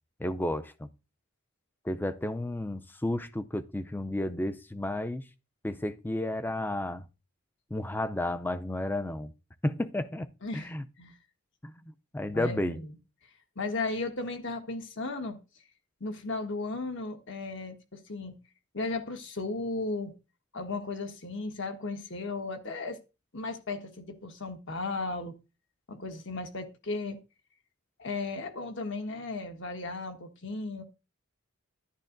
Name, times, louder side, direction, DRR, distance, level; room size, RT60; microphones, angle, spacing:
voice 1, 0.2-0.9 1.8-5.2 5.6-7.0 7.7-9.3 9.6-10.8 11.6-11.7 12.1-12.8, left 1 dB, 10° left, 0.4 m, -32 dB
voice 2, 12.3-12.9 13.5-15.4 16.0-18.4 18.7-20.1 20.5-23.0 23.3-25.3 25.9-27.2 28.0-30.8, left 3 dB, 55° left, 1.4 m, -35 dB
11.0 x 10.5 x 2.6 m
head